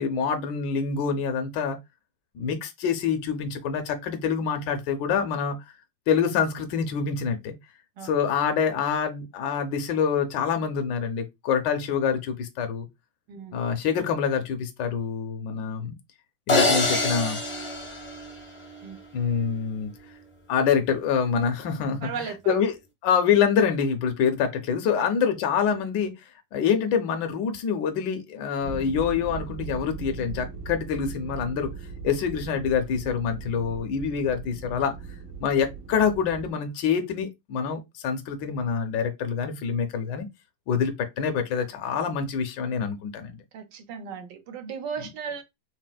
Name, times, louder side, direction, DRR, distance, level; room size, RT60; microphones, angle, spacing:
voice 1, 0.0-1.8 2.3-5.6 6.1-7.5 8.0-12.9 13.5-16.0 16.5-17.4 19.1-19.9 20.5-22.7 23.0-26.1 26.5-31.7 32.0-34.9 35.4-40.3 40.7-43.4, left 7 dB, 75° left, 1.2 m, -26 dB
voice 2, 13.3-13.6 18.8-19.0 22.0-22.6 43.5-45.4, right 6 dB, 70° right, 1.2 m, -36 dB
sound 1, 16.5-18.8, left 2 dB, 45° left, 0.5 m, -25 dB
sound 2, 28.6-36.5, right 5 dB, 90° right, 1.5 m, -39 dB
4.2 x 2.0 x 2.2 m
omnidirectional pair, 2.0 m